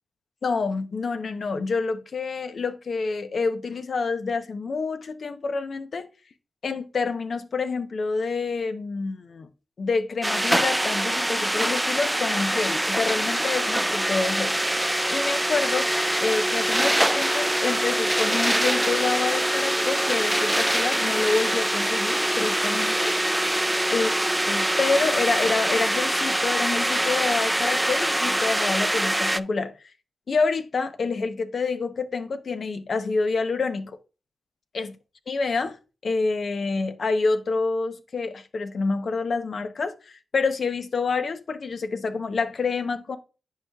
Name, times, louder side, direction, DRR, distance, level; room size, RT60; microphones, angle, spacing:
voice 1, 0.4-6.1 6.6-9.5 9.8-14.5 15.1-15.9 16.2-23.1 23.9-29.7 30.3-33.9 34.7-35.0 35.3-35.8 36.0-43.2, left 4 dB, 70° left, 0.8 m, -27 dB
sound 1, 10.2-29.4, right 1 dB, 10° right, 0.4 m, -24 dB
10.5 x 4.9 x 2.3 m
cardioid pair, 50°, 0 cm